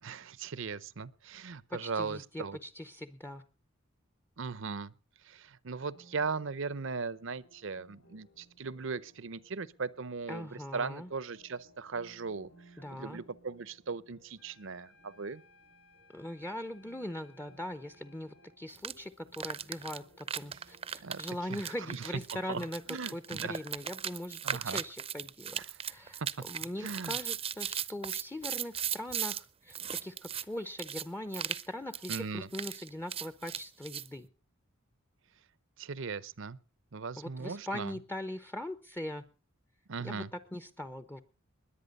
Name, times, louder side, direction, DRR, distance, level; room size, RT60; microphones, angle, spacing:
voice 1, 0.0-2.6 4.4-4.9 5.2-15.4 21.0-21.2 21.5-22.2 22.5-23.6 24.4-24.8 25.6-25.7 26.2-26.3 26.8-27.2 32.1-32.5 35.8-36.6 36.9-37.9 39.9-40.3, right 4 dB, 60° right, 0.7 m, -38 dB
voice 2, 1.7-3.4 10.3-11.1 12.8-13.2 16.1-22.8 23.1-34.3 37.2-39.2 40.0-41.2, left 1 dB, 10° left, 0.7 m, -41 dB
sound 1, 5.8-24.7, equal, 85° left, 6.0 m, -63 dB
sound 2, 14.3-18.6, left 3 dB, 65° left, 6.5 m, -63 dB
sound 3, 18.8-18.9 19.3-29.4 29.7-30.4 30.8-31.0 31.3-31.7 31.9-32.2 32.5-34.1, right 8 dB, 25° right, 0.6 m, -37 dB
21.0 x 8.7 x 5.3 m
head